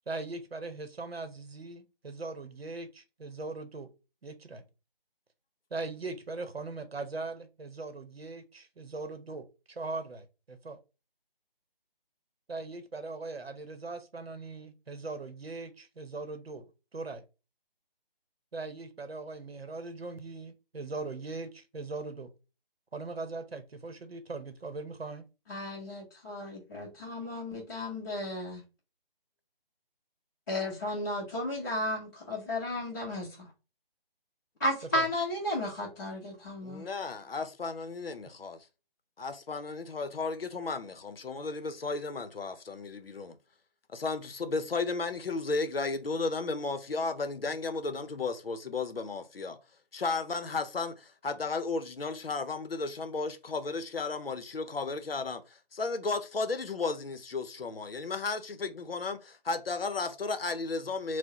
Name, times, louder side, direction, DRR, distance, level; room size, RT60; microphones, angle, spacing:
voice 1, 0.1-3.9 4.2-4.6 5.7-10.8 12.5-16.7 16.9-17.2 18.5-22.3 22.9-25.2 34.9-35.1, right 3 dB, 90° right, 0.8 m, -40 dB
voice 2, 25.5-28.6 30.5-33.5 34.6-36.8, left 1 dB, 20° left, 0.8 m, -34 dB
voice 3, 36.6-38.7 39.2-43.4 43.9-49.6 49.9-61.2, left 3 dB, 75° left, 0.6 m, -34 dB
4.4 x 2.1 x 2.8 m
figure-of-eight pair, 155°, 29 cm